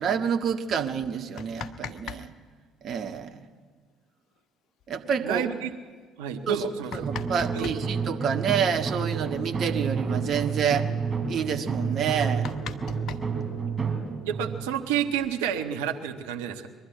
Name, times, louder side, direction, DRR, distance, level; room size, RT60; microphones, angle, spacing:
voice 1, 0.0-2.3 2.8-3.4 4.9-5.4 6.5-6.7 6.9-10.9 11.3-12.5, right 7 dB, 50° right, 4 dB, 1.8 m, -28 dB
sound 1, 1.2-2.2 2.5-2.6 4.4-4.5 4.8-4.9 5.5-5.6 6.4-7.8 9.4-9.5 9.8-10.0 10.3-10.7 11.2-11.3 11.7-11.8 12.1-14.0 14.9-15.7, left 7 dB, 55° left, 1.0 m, -40 dB
voice 2, 5.2-5.7 6.2-7.1 7.5-7.8 14.3-16.7, right 8 dB, 70° right, 4 dB, 1.4 m, -29 dB
sound 2, 7.0-15.8, right 5 dB, 35° right, 3.9 m, -30 dB
22.5 x 12.0 x 9.6 m, 1.5 s
figure-of-eight pair, 50°, 0 cm